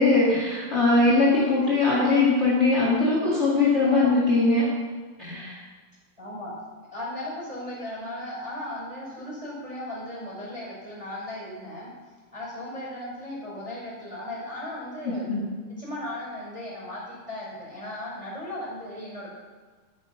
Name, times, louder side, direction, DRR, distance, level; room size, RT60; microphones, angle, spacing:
voice 1, 0.0-4.7 5.2-5.6 15.0-15.4, left 3 dB, 30° left, -6 dB, 1.3 m, -21 dB
voice 2, 3.8-4.2 6.2-6.5 6.9-11.9 12.3-15.3 15.8-19.4, left 1 dB, 5° right, -5 dB, 4.5 m, -36 dB
12.0 x 9.2 x 5.8 m, 1.4 s
omnidirectional pair, 4.7 m